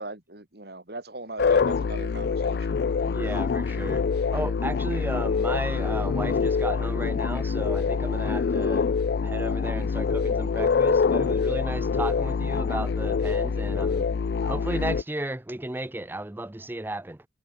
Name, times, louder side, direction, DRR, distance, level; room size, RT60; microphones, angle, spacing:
voice 1, 0.0-2.8, right 2 dB, 60° right, 3.2 m, -39 dB
sound 1, 1.4-15.0, left 5 dB, 60° left, 0.3 m, -25 dB
voice 2, 3.0-4.1 4.3-8.9 9.2-14.1 14.4-17.3, right 1 dB, 10° right, 0.5 m, -34 dB
head